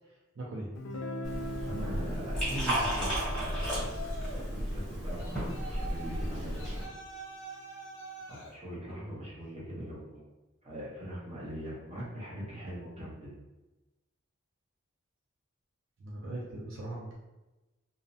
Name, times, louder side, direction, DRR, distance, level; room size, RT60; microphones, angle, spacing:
voice 1, 0.4-0.7 9.0-9.2 16.0-17.1, right 1 dB, 65° right, -3 dB, 0.5 m, -40 dB
Guitar, 0.8-6.5, equal, 85° left, 0.4 m, -42 dB
Liquid, 1.2-6.8, equal, 5° left, 1.0 m, -33 dB
voice 2, 1.6-6.8 8.3-10.3 10.6-13.4, equal, 30° right, -7 dB, 0.8 m, -42 dB
Yell, 3.1-4.5 5.2-8.6, right 1 dB, 60° left, 0.7 m, -45 dB
2.5 x 2.0 x 2.7 m, 1.1 s
head